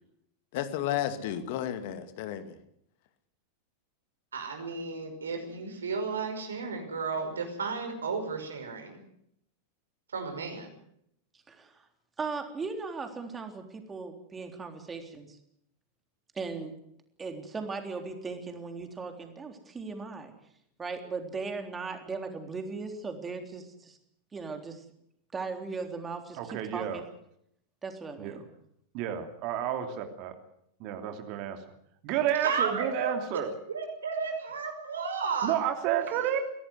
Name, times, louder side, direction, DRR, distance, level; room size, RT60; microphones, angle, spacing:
voice 1, 0.5-2.5, left 11 dB, 50° left, 10 dB, 2.4 m, -32 dB
voice 2, 4.3-9.0 10.1-10.7 32.4-35.6, right 5 dB, 70° right, 5 dB, 5.6 m, -33 dB
voice 3, 11.5-11.9 12.2-15.4 16.4-16.7 17.2-20.3 20.8-24.0 24.3-24.8 25.3-27.1 27.8-28.4, right 4 dB, 15° right, 6 dB, 3.6 m, -38 dB
voice 4, 26.4-27.0 28.2-28.4 28.9-30.3 30.8-31.6 32.0-33.5 35.4-36.4, right 10 dB, 45° right, 6 dB, 2.9 m, -30 dB
23.5 x 17.5 x 8.1 m, 0.73 s
figure-of-eight pair, 90°, 0 cm